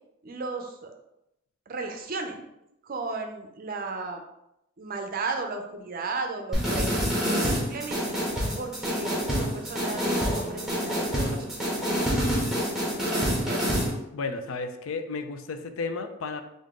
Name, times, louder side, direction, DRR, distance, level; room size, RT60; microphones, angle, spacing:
voice 1, 0.2-0.9 1.7-2.5 2.8-4.2 4.8-6.9 7.3-8.2 8.6-11.7 12.1-12.2 13.1-13.8, right 3 dB, 45° right, 4 dB, 0.5 m, -35 dB
sound 1, 6.5-13.9, equal, ahead, 1.1 m, -27 dB
voice 2, 14.1-16.4, left 4 dB, 75° left, 8 dB, 0.4 m, -33 dB
3.7 x 2.6 x 3.6 m, 0.84 s
head